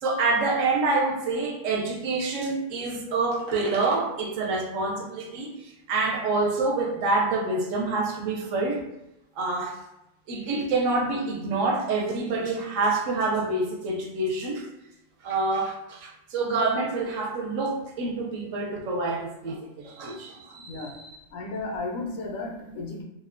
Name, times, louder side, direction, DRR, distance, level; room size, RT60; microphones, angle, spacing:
voice 1, 0.0-8.9 9.4-9.8 10.3-14.7 15.2-21.2, right 3 dB, 75° right, 0 dB, 0.9 m, -27 dB
voice 2, 20.6-23.0, left 3 dB, 85° left, 1 dB, 1.0 m, -34 dB
2.7 x 2.1 x 2.4 m, 0.90 s
omnidirectional pair, 1.4 m